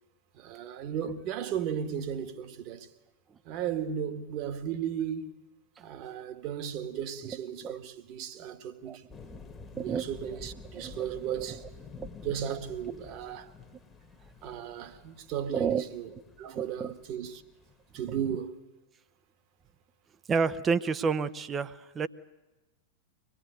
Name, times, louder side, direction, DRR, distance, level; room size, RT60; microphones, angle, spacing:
voice 1, 0.3-2.9 3.4-5.3 5.8-9.1 9.7-11.6 12.2-13.5 14.4-16.1 16.4-17.4 17.9-18.6, right 9 dB, 40° right, 2.0 m, -35 dB
sound 1, 9.1-18.0, left 4 dB, 15° left, 1.7 m, -49 dB
voice 2, 9.8-10.1 10.7-11.1 11.5-11.6 11.9-12.2 15.5-15.8 16.5-16.9 20.3-22.1, right 5 dB, 20° right, 1.0 m, -30 dB
25.0 x 20.0 x 9.4 m
figure-of-eight pair, 90°, 0 cm